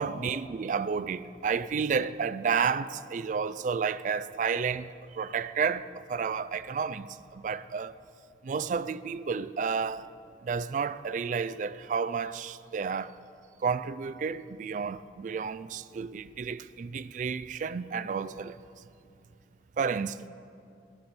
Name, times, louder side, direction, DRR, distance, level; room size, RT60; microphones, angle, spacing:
voice 1, 0.0-7.9 8.4-10.1 10.4-13.2 13.6-18.6 19.8-20.3, right 6 dB, 45° right, 0.3 m, -31 dB
16.0 x 9.7 x 4.3 m
head